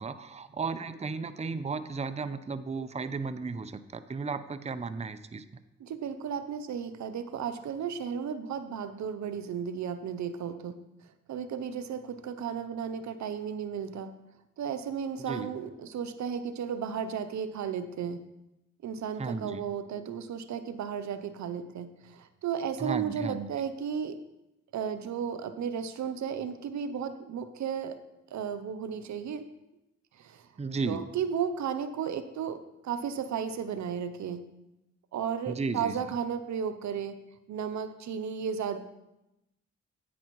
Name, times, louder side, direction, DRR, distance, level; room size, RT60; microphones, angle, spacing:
voice 1, 0.0-5.4 15.2-15.5 19.2-19.6 22.8-23.5 30.6-31.0 35.5-36.0, right 4 dB, 20° right, 12 dB, 0.6 m, -34 dB
voice 2, 5.8-14.2 14.6-18.2 18.8-24.2 24.7-28.0 28.3-29.5 30.1-30.5 30.8-34.5 35.1-38.8, right 7 dB, 75° right, 11 dB, 0.7 m, -34 dB
10.0 x 9.0 x 3.1 m, 0.92 s
cardioid pair, 60°, 29 cm